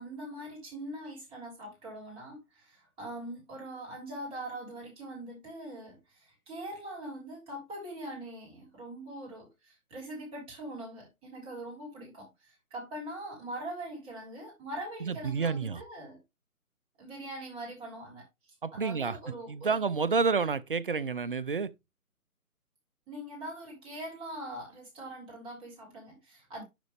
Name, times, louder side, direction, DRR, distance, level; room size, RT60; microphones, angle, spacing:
voice 1, 0.0-16.2 17.0-19.8 23.1-26.6, right 1 dB, 15° right, 3.3 m, -42 dB
voice 2, 15.0-15.8 18.6-19.2 19.5-21.7, right 5 dB, 40° right, 0.5 m, -29 dB
11.0 x 3.8 x 3.2 m
figure-of-eight pair, 145°, 44 cm